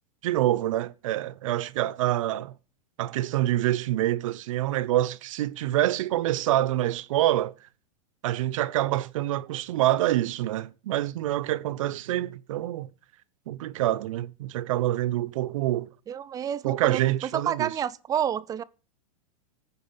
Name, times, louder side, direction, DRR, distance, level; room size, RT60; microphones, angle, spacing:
voice 1, 0.2-2.5 3.0-7.5 8.2-12.9 13.5-15.9 16.6-17.7, right 14 dB, 70° right, 0.9 m, -26 dB
voice 2, 16.1-17.0 17.3-18.6, right 9 dB, 20° right, 0.6 m, -29 dB
15.5 x 9.3 x 5.8 m
supercardioid pair, 140°, 18 cm